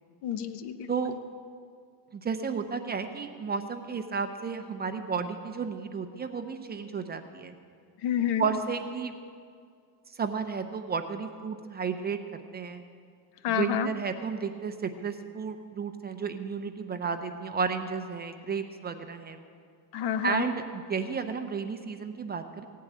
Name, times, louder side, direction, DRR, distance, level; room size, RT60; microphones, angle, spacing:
voice 1, 0.2-0.9 8.0-8.5 13.4-13.9 19.9-20.4, left 9 dB, 65° left, 11 dB, 1.0 m, -29 dB
voice 2, 2.1-7.5 8.4-9.1 10.1-12.8 13.5-19.4 20.2-22.7, right 5 dB, 25° right, 7 dB, 0.6 m, -32 dB
16.5 x 8.5 x 8.5 m, 2.2 s
cardioid pair, 175°, 43 cm